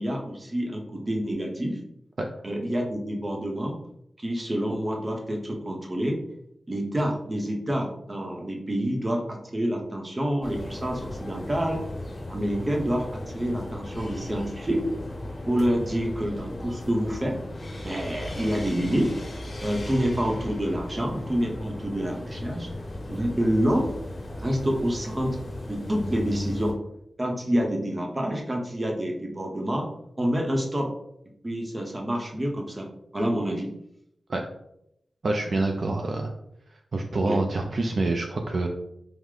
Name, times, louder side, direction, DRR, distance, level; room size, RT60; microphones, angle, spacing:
voice 1, 0.0-1.8 2.4-3.7 4.2-6.2 6.7-11.8 12.3-14.8 15.5-17.4 17.8-19.1 19.6-22.7 23.1-23.9 24.4-25.4 25.7-26.7 27.2-29.9 30.2-30.9 31.4-32.9 33.1-33.7 37.3-37.4, equal, 20° right, 1 dB, 0.7 m, -27 dB
sound 1, 10.4-26.7, left 1 dB, 30° left, 1.3 m, -36 dB
voice 2, 35.2-36.3 36.9-38.7, right 2 dB, 50° right, 2 dB, 0.4 m, -26 dB
4.8 x 2.1 x 3.7 m, 0.77 s
wide cardioid pair, 155°, 0 cm